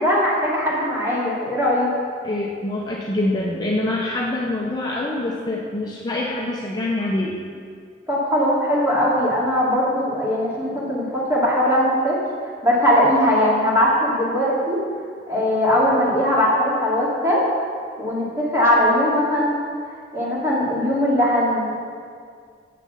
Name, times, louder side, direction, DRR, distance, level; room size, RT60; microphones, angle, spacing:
voice 1, 0.0-1.9 8.1-12.2 12.6-14.8 15.3-17.4 18.0-19.6 20.1-21.8, equal, 15° right, -6 dB, 2.5 m, -20 dB
voice 2, 2.2-7.3, left 2 dB, 20° left, -3 dB, 0.8 m, -25 dB
8.6 x 7.0 x 7.0 m, 2.1 s
head